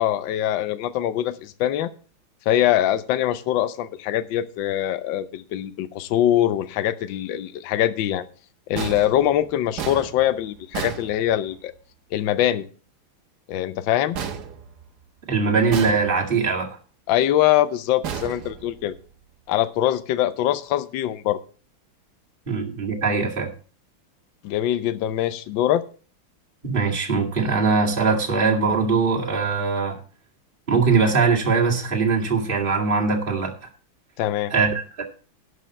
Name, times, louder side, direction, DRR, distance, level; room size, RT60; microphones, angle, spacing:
voice 1, 0.0-1.9 2.5-8.3 8.7-11.7 12.1-12.7 13.5-14.2 17.1-18.9 19.5-21.4 24.4-25.8 34.2-34.5, left 12 dB, 70° left, 1.4 m, -23 dB
sound 1, 8.8-11.8 14.1-15.2 15.7-16.5 18.0-19.1, right 7 dB, 55° right, 1.5 m, -34 dB
voice 2, 15.3-16.7 22.5-23.5 26.6-30.0 30.7-33.5 34.5-35.0, right 4 dB, 25° right, 2.3 m, -21 dB
11.0 x 5.9 x 7.3 m
omnidirectional pair, 2.3 m